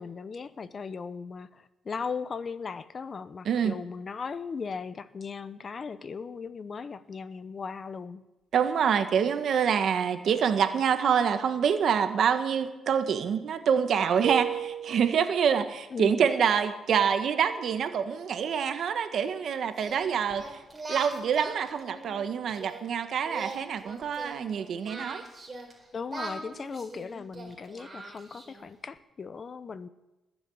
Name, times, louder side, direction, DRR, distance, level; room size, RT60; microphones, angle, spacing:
voice 1, 0.0-8.2 15.9-16.3 25.9-29.9, left 5 dB, 40° left, 15 dB, 0.8 m, -37 dB
voice 2, 8.5-20.4 20.9-25.2, right 7 dB, 60° right, 8 dB, 1.5 m, -26 dB
sound 1, 14.2-15.4, right 9 dB, 85° right, 0.8 m, -33 dB
Singing, 19.8-22.8 23.2-25.7 26.1-28.7, right 2 dB, 25° right, 4.3 m, -41 dB
20.0 x 7.2 x 8.7 m, 1.0 s
cardioid pair, 90°, 0 cm